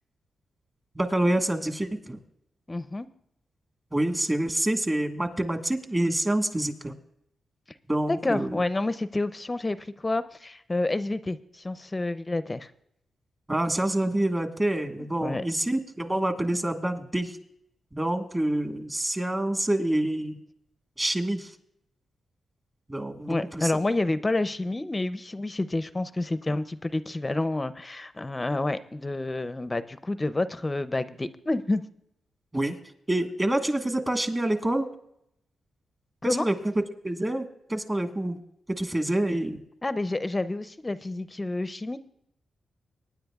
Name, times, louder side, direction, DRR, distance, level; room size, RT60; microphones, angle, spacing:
voice 1, 0.9-2.2 3.9-6.9 7.9-8.6 13.5-17.4 17.9-20.4 21.0-21.5 22.9-23.7 32.5-32.8 33.1-34.9 36.2-36.5 37.0-38.4 38.8-39.6, right 1 dB, 25° right, 5 dB, 1.5 m, -27 dB
voice 2, 2.7-3.1 8.1-12.7 15.2-15.4 23.3-31.8 36.2-36.5 39.8-42.0, left 2 dB, 25° left, 13 dB, 0.5 m, -29 dB
23.5 x 10.0 x 2.3 m, 0.75 s
cardioid pair, 75°, 0 cm